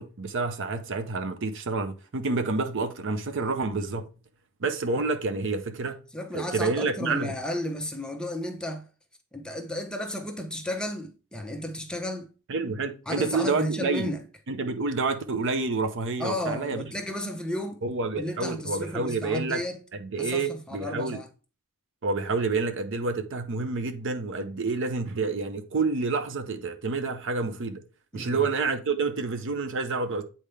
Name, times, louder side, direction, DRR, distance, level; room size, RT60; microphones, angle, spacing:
voice 1, 0.0-4.1 4.6-6.0 6.3-7.3 12.5-14.1 14.5-16.8 17.8-19.6 20.0-21.2 22.0-27.8 28.1-30.2, right 3 dB, 55° right, 0.7 m, -28 dB
voice 2, 6.1-8.9 9.3-12.3 13.1-14.2 16.2-17.8 18.2-19.8 20.2-21.3 28.1-28.5, left 1 dB, 5° left, 0.8 m, -33 dB
8.4 x 4.3 x 3.4 m
head